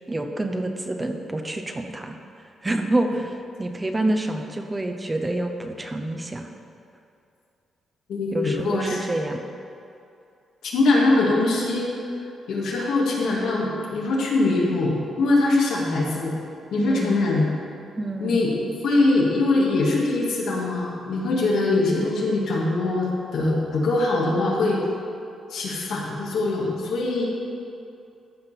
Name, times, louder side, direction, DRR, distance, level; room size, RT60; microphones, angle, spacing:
voice 1, 0.1-2.2 2.6-6.5 8.3-9.5 16.8-17.1 18.0-18.4, right 1 dB, 15° right, 4 dB, 0.7 m, -27 dB
voice 2, 8.1-9.0 10.6-12.1 12.5-16.3 16.7-17.5 18.2-18.6 18.8-24.8 25.5-27.3, left 2 dB, 80° left, -3 dB, 2.3 m, -22 dB
13.5 x 5.3 x 5.9 m, 2.6 s
cardioid pair, 140°, 0 cm